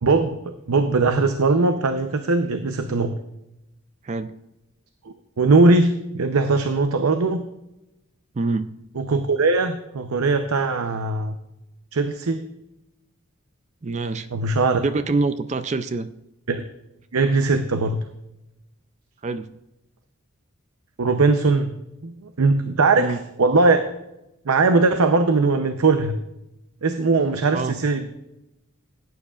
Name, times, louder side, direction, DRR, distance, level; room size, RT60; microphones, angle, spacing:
voice 1, 0.0-3.2 5.4-7.4 9.0-11.4 11.9-12.5 14.3-14.8 16.5-16.6 17.1-18.0 21.0-21.7 22.0-23.8 24.5-26.2 26.8-28.1, right 3 dB, 85° right, 8 dB, 0.7 m, -20 dB
voice 2, 8.4-8.7 13.8-14.3 14.8-16.1 19.2-19.5 23.0-23.2 27.5-27.8, right 3 dB, 30° right, 12 dB, 0.4 m, -25 dB
16.5 x 9.4 x 2.4 m, 0.92 s
head